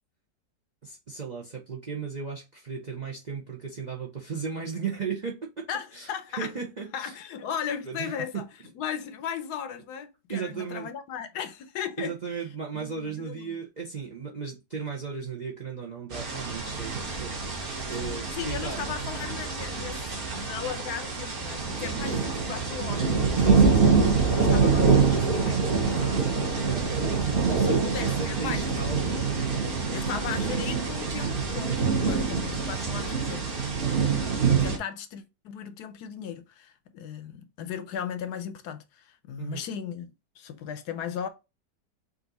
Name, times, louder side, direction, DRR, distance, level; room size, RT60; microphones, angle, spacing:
voice 1, 0.8-5.7 5.9-6.1 6.4-7.1 7.9-8.5 10.3-10.9 12.0-18.8 23.4-24.0 25.4-25.6 25.9-29.0 33.8-34.4 39.4-39.6, right 6 dB, 70° right, 0.4 m, -36 dB
voice 2, 5.7-6.5 6.9-8.4 8.8-12.4 12.7-13.5 18.0-23.8 24.3-26.5 27.6-29.0 29.9-33.6 34.5-40.1 40.4-41.3, left 8 dB, 70° left, 1.1 m, -37 dB
sound 1, 16.1-34.8, right 5 dB, 45° right, 0.8 m, -25 dB
5.3 x 2.6 x 3.9 m
omnidirectional pair, 1.9 m